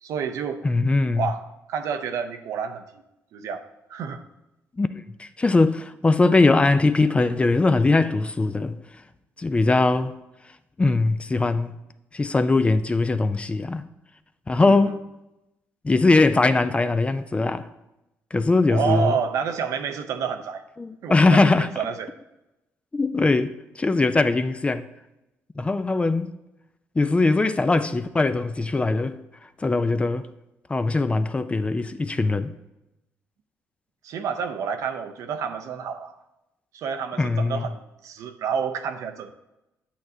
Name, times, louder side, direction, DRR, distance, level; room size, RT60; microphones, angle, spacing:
voice 1, 0.0-0.6 1.2-1.4 1.7-2.9 3.3-3.6 3.9-4.2 14.7-15.0 18.7-20.6 21.0-22.1 34.0-36.1 36.7-39.3, right 6 dB, 75° right, 0.6 m, -29 dB
voice 2, 0.6-1.3 4.8-8.8 9.4-10.1 10.8-11.7 12.1-13.8 14.5-15.0 15.8-17.7 18.3-19.1 20.8-21.7 22.9-24.8 25.6-26.3 27.0-29.2 29.6-30.2 30.7-32.5 37.2-37.7, left 3 dB, 20° left, 0.4 m, -21 dB
8.4 x 7.6 x 2.7 m
cardioid pair, 75°, 5 cm